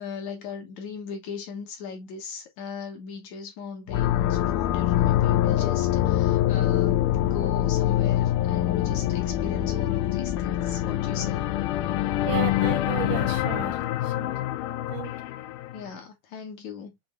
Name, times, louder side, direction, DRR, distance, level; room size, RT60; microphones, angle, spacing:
voice 1, 0.0-11.5 15.7-16.9, left 5 dB, 65° left, 2.3 m, -38 dB
sound 1, 3.9-15.8, left 13 dB, 85° left, 2.1 m, -25 dB
voice 2, 12.2-14.4 14.9-15.1, right 12 dB, 80° right, 2.5 m, -34 dB
6.7 x 2.7 x 2.3 m
omnidirectional pair, 3.6 m